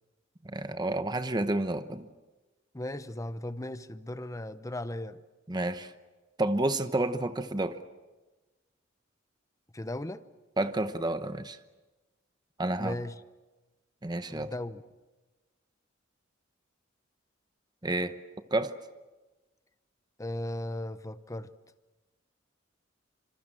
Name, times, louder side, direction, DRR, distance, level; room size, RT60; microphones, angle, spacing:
voice 1, 0.4-2.1 5.5-5.9 6.4-7.8 10.6-11.6 12.6-13.0 14.0-14.5 17.8-18.1 18.5-18.7, right 2 dB, 20° right, 1.0 m, -30 dB
voice 2, 2.7-5.2 9.7-10.2 12.8-13.1 14.3-14.8 20.2-21.5, left 1 dB, 15° left, 0.8 m, -37 dB
26.0 x 26.0 x 7.7 m
head